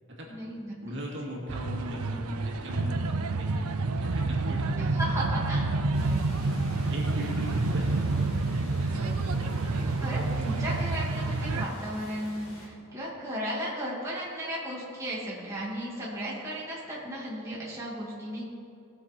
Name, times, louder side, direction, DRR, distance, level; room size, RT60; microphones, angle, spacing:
voice 1, 0.3-1.0 4.8-6.6 8.9-9.4 9.7-18.5, equal, 15° right, -6 dB, 2.4 m, -36 dB
voice 2, 0.8-4.8 5.9-6.0 6.9-7.9, equal, 55° right, -3 dB, 2.3 m, -38 dB
sound 1, 1.5-11.7, right 3 dB, 85° right, 0.6 m, -28 dB
sound 2, 5.9-12.7, left 1 dB, 65° left, 3.0 m, -48 dB
19.0 x 7.4 x 4.5 m, 2.5 s
head